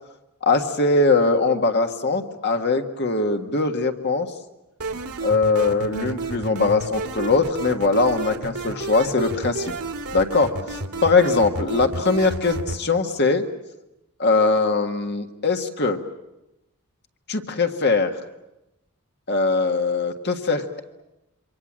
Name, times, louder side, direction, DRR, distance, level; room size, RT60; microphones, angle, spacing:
voice 1, 0.4-4.3 5.2-9.7 10.1-13.4 14.2-16.0 17.3-18.1 19.3-20.8, left 3 dB, 50° left, 5 dB, 1.7 m, -21 dB
sound 1, 4.8-12.8, right 3 dB, 85° right, 2.2 m, -31 dB
27.5 x 24.5 x 7.5 m, 0.92 s
head